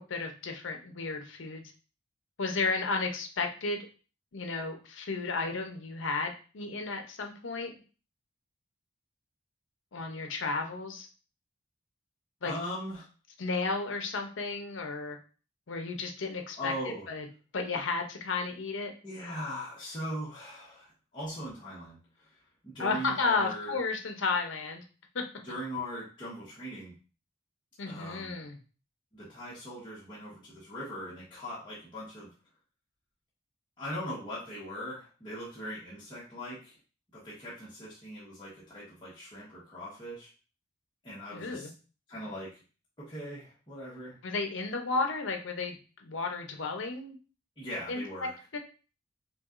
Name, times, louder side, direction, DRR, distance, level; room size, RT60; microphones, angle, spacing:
voice 1, 0.0-1.6 2.4-3.9 4.3-7.7 9.9-11.1 12.4-12.5 13.4-15.2 15.7-16.7 17.1-17.2 17.5-18.9 22.8-24.8 25.1-25.2 27.8-28.6 41.3-41.7 44.2-45.8 46.0-47.2 47.9-48.6, left 4 dB, 70° left, 4 dB, 0.7 m, -33 dB
voice 2, 12.4-13.1 16.6-17.1 19.0-22.0 22.6-23.8 25.4-26.9 27.8-28.4 29.1-32.3 33.8-36.7 37.1-40.3 41.0-41.7 42.1-42.5 43.0-44.2 47.6-48.3, equal, 25° left, -9 dB, 1.2 m, -40 dB
5.7 x 2.3 x 2.5 m, 0.36 s
head